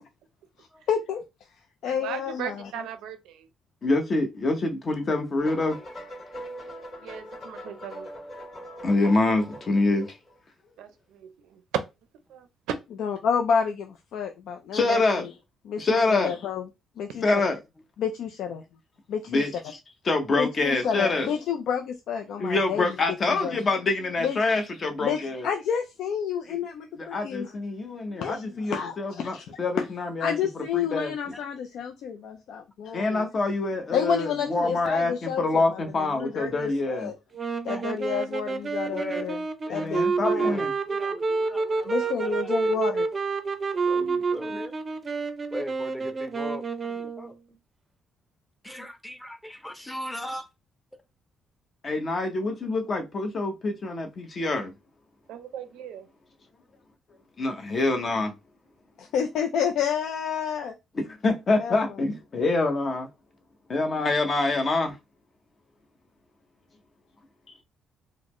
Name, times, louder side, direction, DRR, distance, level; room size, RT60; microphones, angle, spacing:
voice 1, 0.9-1.2 1.8-2.7 13.0-15.3 15.7-16.7 17.0-17.4 18.0-18.6 19.1-19.4 20.4-22.9 23.3-23.6 24.2-24.4 25.0-27.5 28.1-28.4 28.7-29.5 30.2-33.2 33.9-37.1 37.6-39.4 39.7-40.6 41.9-43.1 59.0-60.7 61.6-61.8, left 7 dB, 80° left, 0.4 m, -30 dB
voice 2, 1.8-3.5 7.0-8.1 10.8-11.6 12.3-12.5 55.3-56.1, right 9 dB, 90° right, 0.5 m, -39 dB
voice 3, 3.8-5.8 8.8-10.2 14.7-15.3 15.8-16.3 17.2-17.6 19.3-19.8 20.0-21.3 22.4-25.5 27.0-31.1 32.9-37.1 39.7-40.7 44.0-44.5 51.8-54.7 57.4-58.3 60.9-63.1 63.7-65.0, left 2 dB, 45° left, 0.8 m, -26 dB
sound 1, 5.4-10.4, equal, 60° left, 2.0 m, -41 dB
sound 2, 37.3-47.3, right 4 dB, 35° right, 0.5 m, -29 dB
voice 4, 38.9-39.2 39.7-39.9 40.3-42.8 43.9-44.7 45.5-46.6 46.9-47.6 48.6-50.5, equal, 10° left, 0.7 m, -39 dB
3.9 x 2.1 x 3.0 m
cardioid pair, 90°, 0 cm